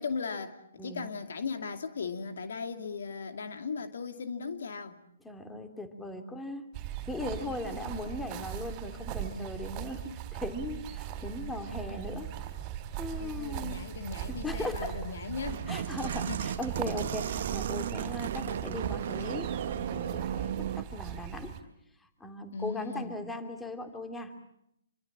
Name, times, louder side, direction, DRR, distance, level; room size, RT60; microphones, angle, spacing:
voice 1, 0.0-5.0 13.2-15.6 16.3-16.5 22.5-23.2, left 5 dB, 65° left, 2.5 m, -37 dB
voice 2, 5.2-6.7 7.1-10.0 10.3-12.3 13.0-13.8 14.3-14.9 15.7-21.5 22.2-24.3, left 1 dB, 5° left, 2.9 m, -38 dB
sound 1, 6.7-21.6, right 11 dB, 25° right, 4.1 m, -39 dB
sound 2, 15.4-20.8, right 9 dB, 50° right, 1.4 m, -35 dB
27.5 x 25.5 x 7.4 m
figure-of-eight pair, 135°, 0 cm